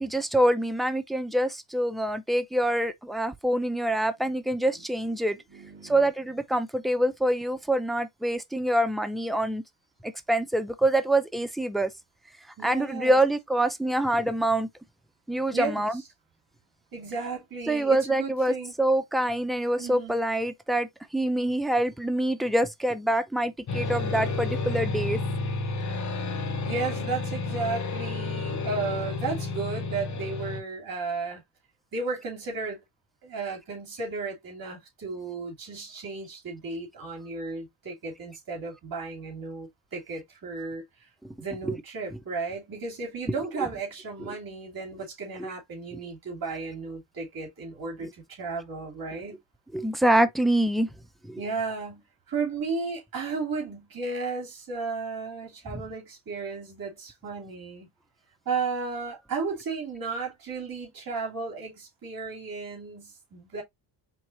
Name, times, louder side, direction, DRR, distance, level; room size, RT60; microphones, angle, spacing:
voice 1, 0.0-5.4 5.8-9.6 10.0-11.9 12.6-14.7 15.3-15.9 17.7-25.2 41.2-41.3 41.6-41.7 45.4-45.5 49.7-50.9 51.3-51.4, right 1 dB, ahead, 0.4 m, -25 dB
voice 2, 5.5-6.1 12.6-13.2 15.5-16.0 16.9-18.7 19.8-20.2 26.6-31.4 31.9-32.8 33.2-40.8 41.4-49.4 51.4-57.9 58.4-63.6, right 4 dB, 45° right, 2.8 m, -34 dB
sound 1, 23.7-30.6, left 3 dB, 35° left, 1.0 m, -31 dB
4.5 x 3.6 x 3.0 m
cardioid pair, 115°, 50 cm